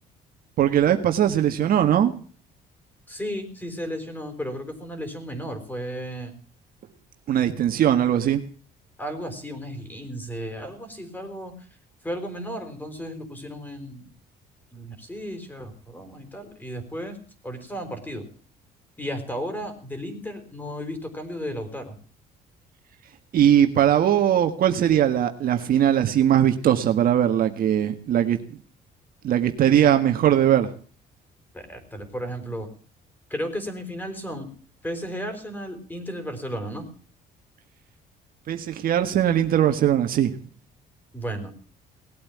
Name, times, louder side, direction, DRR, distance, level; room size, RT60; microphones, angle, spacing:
voice 1, 0.6-2.1 7.3-8.4 23.3-28.4 29.2-30.7 38.5-40.3, right 10 dB, 60° right, 7 dB, 1.7 m, -20 dB
voice 2, 3.1-6.3 7.4-7.7 9.0-11.7 12.0-14.1 14.7-17.2 17.4-18.3 19.0-22.0 31.5-32.7 33.3-34.5 34.8-36.9 41.1-41.5, equal, 10° left, 8 dB, 4.7 m, -34 dB
19.0 x 8.6 x 8.6 m, 0.42 s
cardioid pair, 110°, 17 cm